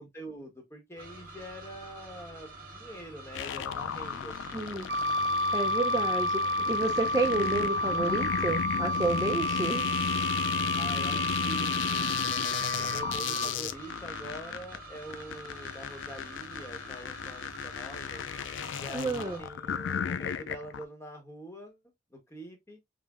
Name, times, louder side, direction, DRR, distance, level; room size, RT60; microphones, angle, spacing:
voice 1, 0.0-4.8 10.8-12.2 12.8-18.2 18.8-21.8 22.1-22.8, right 1 dB, 15° left, 0.8 m, -45 dB
sound 1, 1.0-19.4, right 2 dB, 50° right, 1.4 m, -47 dB
sound 2, 3.3-20.8, left 8 dB, 85° left, 0.3 m, -35 dB
voice 2, 4.5-4.9 5.5-9.9 18.9-19.4, right 2 dB, 20° right, 0.3 m, -30 dB
Wind instrument woodwind instrument, 4.9-13.5, left 1 dB, 85° right, 0.5 m, -30 dB
5.2 x 2.0 x 2.3 m
head